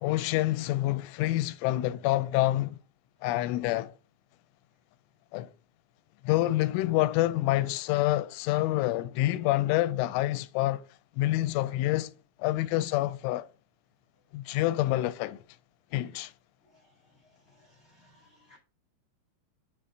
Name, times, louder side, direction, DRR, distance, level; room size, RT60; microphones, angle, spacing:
voice 1, 0.0-2.8 3.2-3.9 5.3-5.5 6.2-10.8 11.2-12.1 12.4-13.5 14.3-15.4 15.9-16.3, left 16 dB, 85° left, 3.0 m, -27 dB
voice 2, 16.6-18.6, left 1 dB, 60° left, 0.7 m, -62 dB
9.7 x 3.7 x 5.2 m
omnidirectional pair, 5.5 m